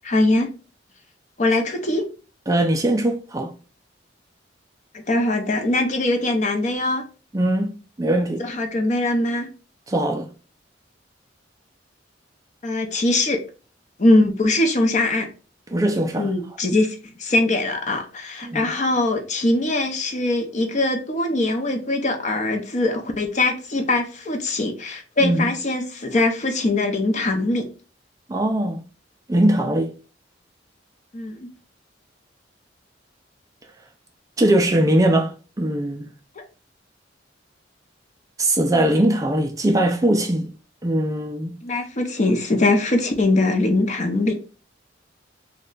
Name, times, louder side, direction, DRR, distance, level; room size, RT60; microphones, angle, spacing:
voice 1, 0.0-0.5 1.4-2.0 5.1-7.0 8.4-9.5 12.6-13.4 14.0-15.3 16.2-27.7 31.1-31.5 36.4-36.5 41.6-44.4, left 2 dB, 40° left, 0.6 m, -22 dB
voice 2, 2.5-3.5 7.3-8.4 9.9-10.3 15.7-16.3 18.4-18.7 25.2-25.5 28.3-28.8 29.3-29.9 34.4-36.1 38.4-40.5 40.8-41.5, right 1 dB, 20° right, 0.3 m, -21 dB
3.1 x 2.2 x 3.8 m
head